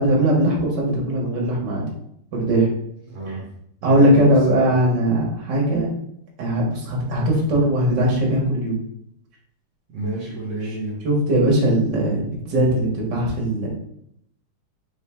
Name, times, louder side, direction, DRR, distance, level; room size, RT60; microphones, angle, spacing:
voice 1, 0.0-1.8 2.3-2.7 3.8-5.9 6.4-8.8 11.0-13.7, right 1 dB, 55° right, -2 dB, 1.2 m, -19 dB
voice 2, 3.1-3.4 3.8-4.7 9.9-11.0, right 2 dB, 75° right, -4 dB, 1.1 m, -30 dB
4.2 x 3.6 x 3.5 m, 0.72 s
omnidirectional pair, 3.6 m